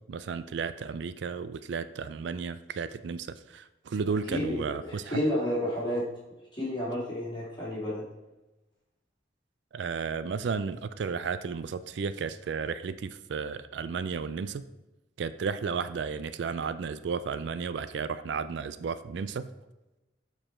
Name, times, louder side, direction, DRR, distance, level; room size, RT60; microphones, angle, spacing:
voice 1, 0.1-5.2 9.7-14.6 15.2-19.5, right 5 dB, 70° right, 13 dB, 0.4 m, -33 dB
voice 2, 4.2-6.1 6.5-8.1, left 1 dB, 25° left, -7 dB, 2.5 m, -31 dB
7.7 x 4.8 x 4.3 m, 1.0 s
head